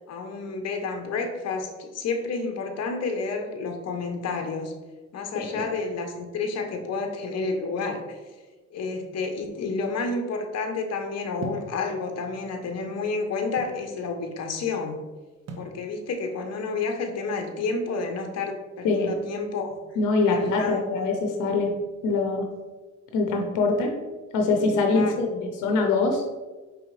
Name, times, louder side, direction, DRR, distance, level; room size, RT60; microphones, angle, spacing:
voice 1, 0.1-4.7 5.1-8.0 8.7-15.0 15.6-19.8 20.3-21.0 24.9-25.1, left 4 dB, 60° left, 4 dB, 0.8 m, -30 dB
sound 1, 11.4-11.8 12.6-13.8 15.5-15.8, right 3 dB, 55° right, 0.8 m, -38 dB
voice 2, 20.0-21.7 22.0-22.5 23.1-24.0 24.3-26.2, left 3 dB, 90° left, 2 dB, 0.7 m, -23 dB
4.8 x 3.4 x 3.1 m, 1.3 s
cardioid pair, 90°, 30 cm